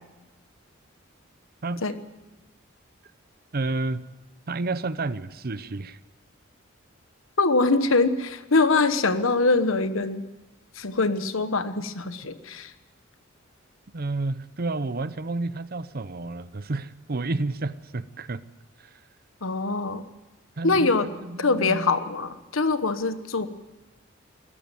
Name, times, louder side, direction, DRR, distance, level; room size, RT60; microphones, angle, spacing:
voice 1, 3.5-4.1 4.5-6.0 13.9-18.4 18.8-19.0 20.6-22.0, right 2 dB, 50° right, 0.7 m, -30 dB
voice 2, 7.4-10.2 10.8-12.7 19.4-20.0 20.6-21.1 21.4-23.5, left 3 dB, 80° left, 1.2 m, -23 dB
20.5 x 14.0 x 9.2 m
head